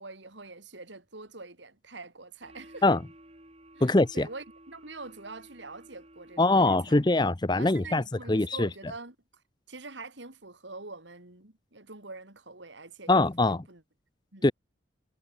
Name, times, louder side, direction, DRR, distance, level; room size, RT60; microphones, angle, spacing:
voice 1, 0.0-3.0 3.7-7.0 7.5-9.2 9.7-13.8 14.3-14.5, right 3 dB, 75° right, 3.5 m, -45 dB
sound 1, 2.4-7.2, right 1 dB, 35° right, 7.8 m, -54 dB
voice 2, 3.8-4.3 6.4-8.0 8.3-8.7 13.1-13.6 14.4-14.5, left 2 dB, 25° left, 0.7 m, -23 dB
head